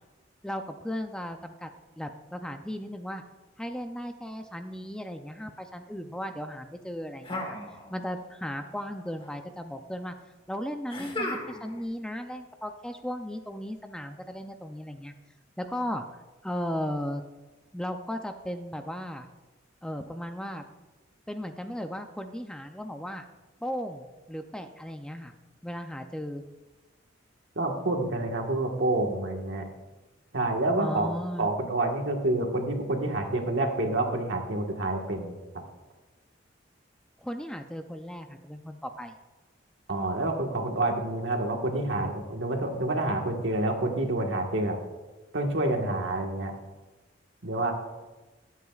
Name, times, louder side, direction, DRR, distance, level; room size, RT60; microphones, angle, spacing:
voice 1, 0.4-1.7 2.0-3.2 3.6-7.6 7.9-10.1 10.5-15.1 15.6-16.1 16.4-17.2 17.7-19.3 19.8-20.6 21.3-23.2 23.6-25.3 25.6-26.4 30.8-31.5 37.2-39.1, equal, 5° left, 6 dB, 0.5 m, -36 dB
sound 1, 7.2-8.2 8.5-9.3 10.9-11.8, left 1 dB, 30° left, 1.4 m, -36 dB
voice 2, 27.5-29.7 30.3-35.4 39.9-44.8 45.3-46.5 47.4-47.7, right 2 dB, 70° right, 2 dB, 1.5 m, -28 dB
23.0 x 8.2 x 2.4 m, 1.2 s
head